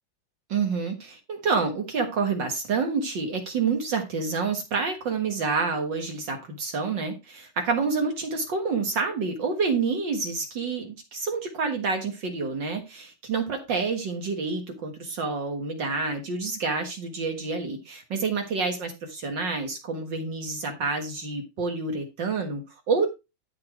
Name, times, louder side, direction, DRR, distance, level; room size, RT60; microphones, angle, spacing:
voice 1, 0.5-23.1, right 4 dB, 60° right, 4 dB, 2.2 m, -28 dB
12.5 x 4.3 x 4.7 m, 0.25 s
omnidirectional pair, 2.3 m